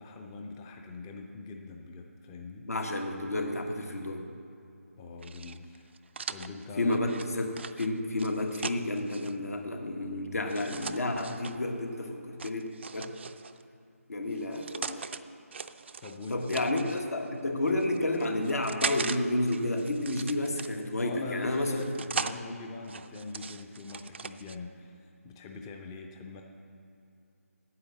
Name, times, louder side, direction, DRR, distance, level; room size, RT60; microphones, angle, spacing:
voice 1, 0.0-2.7 5.0-6.0 6.3-7.0 16.0-16.7 21.0-26.4, left 3 dB, 15° left, 3 dB, 0.5 m, -43 dB
voice 2, 2.6-4.3 6.8-13.1 14.1-15.1 16.3-21.9, left 1 dB, 80° left, 3 dB, 1.5 m, -31 dB
sound 1, 5.2-9.3 10.5-11.6 12.4-13.6 14.3-15.2 15.5-17.0 17.7-19.2 19.5-21.0 21.6-22.4 22.8-24.6, right 5 dB, 50° right, 0.4 m, -39 dB
9.6 x 8.4 x 7.2 m, 2.6 s
figure-of-eight pair, 155°, 8 cm